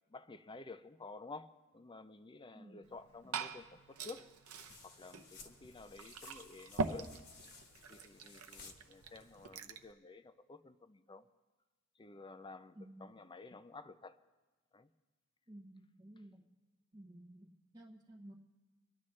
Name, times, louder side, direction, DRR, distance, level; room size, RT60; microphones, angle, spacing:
voice 1, 0.1-4.3 4.8-7.2 7.9-11.3 12.0-14.2 14.7-14.9, left 3 dB, 20° left, 11 dB, 0.5 m, -52 dB
voice 2, 2.5-2.9 12.7-13.2 15.5-16.5 16.9-18.3, right 1 dB, 20° right, -4 dB, 0.8 m, -55 dB
Glass / Fill (with liquid), 2.8-9.9, right 4 dB, 90° right, 0.7 m, -44 dB
sound 1, 4.4-9.5, left 4 dB, 50° left, 1.3 m, -58 dB
24.0 x 11.5 x 3.2 m, 1.2 s
head